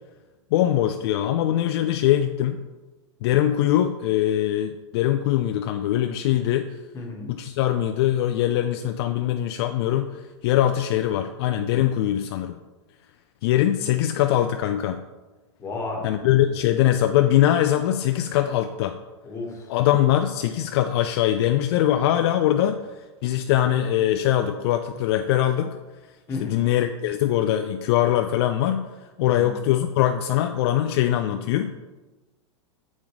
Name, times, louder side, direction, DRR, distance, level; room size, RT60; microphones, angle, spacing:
voice 1, 0.5-2.6 3.2-6.7 7.3-12.6 13.4-15.0 16.0-19.0 19.7-22.8 23.2-25.8 26.3-28.9 29.2-31.7, left 12 dB, 60° left, 7 dB, 0.4 m, -22 dB
voice 2, 6.9-7.3 15.6-16.1 19.2-19.7 26.3-26.6 29.2-29.5, left 2 dB, 20° left, -1 dB, 1.5 m, -33 dB
7.3 x 5.1 x 3.2 m, 1.2 s
hypercardioid pair, 125°, 15 cm